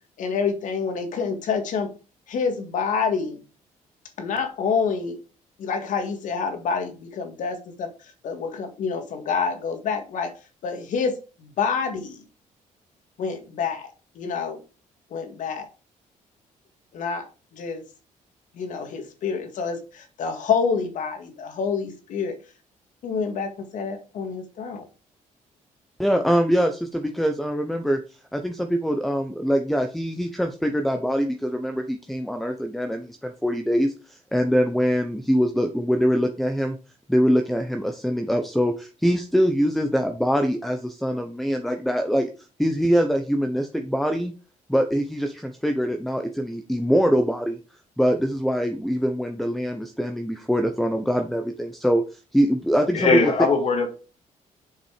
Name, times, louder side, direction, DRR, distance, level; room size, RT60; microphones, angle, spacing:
voice 1, 0.2-1.9 2.3-3.4 4.2-5.2 5.6-7.9 8.2-10.3 10.6-12.2 13.2-13.9 14.2-14.6 15.1-15.7 16.9-17.3 17.5-17.8 18.5-22.4 23.0-24.9, left 5 dB, 70° left, 7 dB, 2.0 m, -27 dB
voice 2, 26.0-36.8 37.1-42.3 42.6-44.3 44.7-47.6 48.0-53.3, equal, ahead, 6 dB, 0.8 m, -23 dB
voice 3, 52.9-53.9, left 4 dB, 50° left, 4 dB, 2.5 m, -20 dB
7.4 x 5.7 x 5.0 m, 0.34 s
cardioid pair, 130°, 14 cm